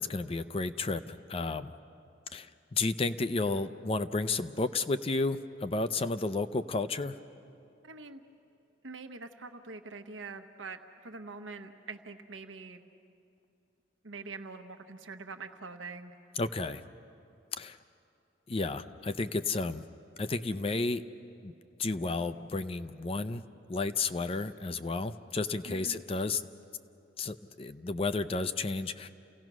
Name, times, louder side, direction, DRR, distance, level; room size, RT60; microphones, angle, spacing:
voice 1, 0.0-1.7 2.3-7.2 16.4-16.8 17.6-17.8 18.5-19.8 20.2-21.0 21.4-21.5 21.8-23.4 23.7-26.4 27.2-29.1, left 3 dB, 30° left, 11 dB, 0.5 m, -32 dB
voice 2, 7.8-8.2 8.8-12.8 14.0-16.1 25.6-26.0, right 4 dB, 80° right, 6 dB, 1.1 m, -44 dB
29.0 x 16.5 x 6.2 m, 2.6 s
head